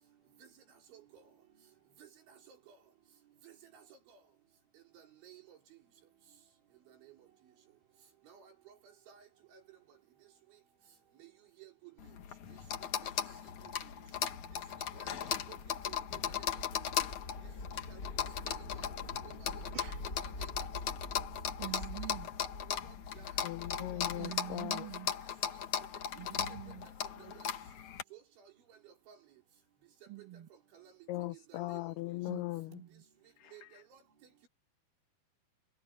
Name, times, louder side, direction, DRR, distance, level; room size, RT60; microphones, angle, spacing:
voice 1, 0.9-1.2 2.0-2.1 2.5-2.8 3.4-3.8 5.0-5.6 7.0-7.1 8.3-8.7 9.1-9.2 9.5-9.6 11.2-11.3 11.6-11.9 13.8-13.9 14.9-15.6 15.9-16.5 16.9-17.0 17.9-18.0 18.5-18.9 19.2-19.9 20.2-20.5 22.7-23.3 23.8-23.9 24.2-24.4 25.8-25.9 26.1-26.2 27.2-27.5 28.1-28.2 28.9-29.2 30.2-30.3 30.7-30.9 31.5-31.8 33.5-33.6 33.9-34.0, right 10 dB, 80° right, 7.2 m, -55 dB
sound 1, 12.0-28.0, left 9 dB, 55° left, 2.4 m, -38 dB
sound 2, 13.9-24.0, left 2 dB, 20° left, 5.2 m, -47 dB
voice 2, 21.6-22.3 24.2-25.1 26.2-26.9 27.1-27.3 30.1-30.5 32.3-33.0, right 15 dB, 50° right, 1.4 m, -46 dB
voice 3, 23.4-24.9 31.1-32.8 33.4-33.7, left 17 dB, 85° left, 2.3 m, -39 dB
omnidirectional pair, 5.3 m